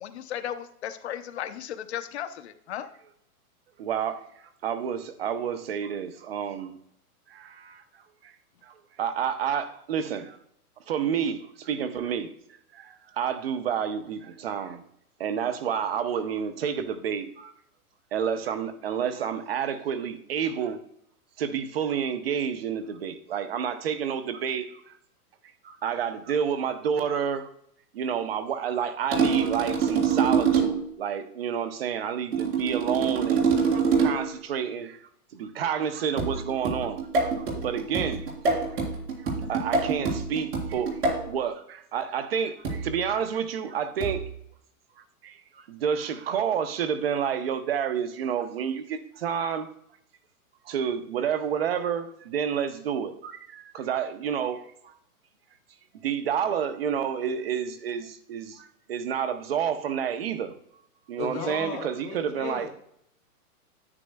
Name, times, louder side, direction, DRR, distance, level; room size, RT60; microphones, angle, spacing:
voice 1, 0.0-2.9, left 10 dB, 45° left, 10 dB, 0.7 m, -35 dB
voice 2, 3.8-4.2 4.6-6.8 7.3-7.8 8.2-8.3 8.6-10.4 10.9-12.3 12.7-14.8 15.2-17.5 18.1-20.8 21.4-24.9 25.6-27.5 27.9-35.0 35.3-38.3 39.2-44.2 45.2-49.7 50.6-54.9 56.0-60.6 61.1-62.7, right 8 dB, 40° right, 11 dB, 0.7 m, -29 dB
sound 1, 29.1-30.9 32.3-34.3 36.2-41.3 42.6-43.0 44.0-44.3, right 5 dB, 90° right, 3.6 m, -26 dB
voice 3, 61.2-62.7, left 6 dB, 15° left, 2 dB, 0.9 m, -35 dB
9.8 x 9.6 x 2.2 m, 0.71 s
hypercardioid pair, 165°, 46 cm